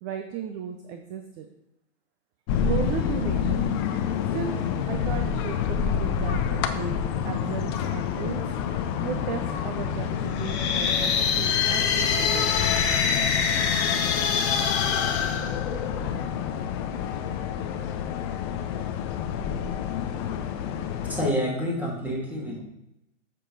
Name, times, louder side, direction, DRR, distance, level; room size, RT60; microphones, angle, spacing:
voice 1, 0.0-1.5 2.6-3.6 4.3-4.6 4.9-8.5 9.0-12.7, right 8 dB, 30° right, 6 dB, 0.6 m, -35 dB
sound 1, 2.5-21.3, left 8 dB, 20° left, 0.4 m, -28 dB
sound 2, 10.3-16.2, left 6 dB, 55° left, 1.2 m, -25 dB
voice 2, 21.1-22.6, equal, 5° right, -4 dB, 2.4 m, -28 dB
7.4 x 6.9 x 4.0 m, 0.85 s
hypercardioid pair, 125°, 38 cm